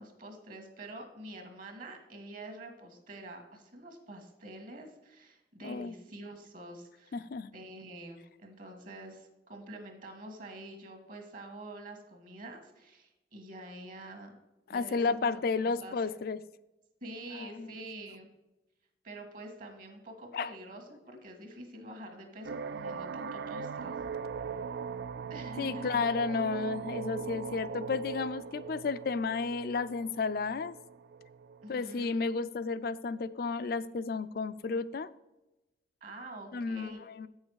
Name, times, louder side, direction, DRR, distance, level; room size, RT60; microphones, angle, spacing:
voice 1, 0.0-7.2 7.5-14.3 14.7-16.2 17.0-18.3 19.0-24.0 25.3-26.0 31.6-32.2 36.0-37.0, right 1 dB, 50° right, 5 dB, 1.6 m, -47 dB
voice 2, 5.6-5.9 7.1-7.5 14.7-16.4 17.3-17.8 20.3-20.5 25.6-30.7 31.7-35.1 36.5-37.3, left 4 dB, 55° left, 14 dB, 0.4 m, -32 dB
sound 1, 22.4-32.0, right 6 dB, 75° right, 0.4 m, -40 dB
8.2 x 6.4 x 4.7 m, 0.98 s
head